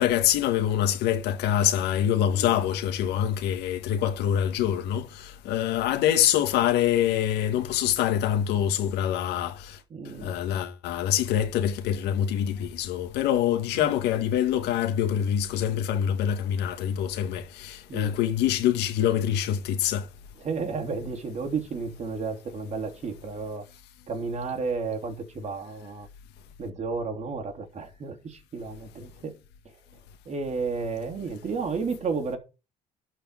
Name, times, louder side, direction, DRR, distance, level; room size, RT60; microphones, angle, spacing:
voice 1, 0.0-9.8 10.2-20.1, left 10 dB, 85° left, 1.8 m, -25 dB
voice 2, 2.3-2.6 9.9-10.4 13.7-13.9 17.9-18.2 20.4-23.6 24.1-26.1 26.6-29.3 30.2-32.4, right 4 dB, 40° right, 3.1 m, -32 dB
11.5 x 4.9 x 7.4 m
cardioid pair, 110°, 17 cm